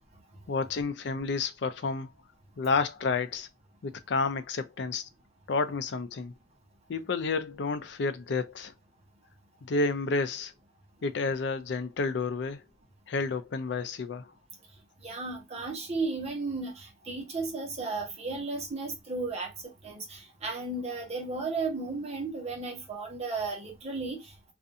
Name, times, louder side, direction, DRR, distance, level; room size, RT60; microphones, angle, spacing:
voice 1, 0.5-2.1 2.6-3.5 3.8-5.1 5.5-6.3 6.9-8.7 9.6-10.5 11.0-12.6 13.1-14.3, left 4 dB, 70° left, 0.4 m, -30 dB
voice 2, 15.0-24.3, right 3 dB, 35° right, 0.9 m, -34 dB
2.5 x 2.4 x 2.6 m
head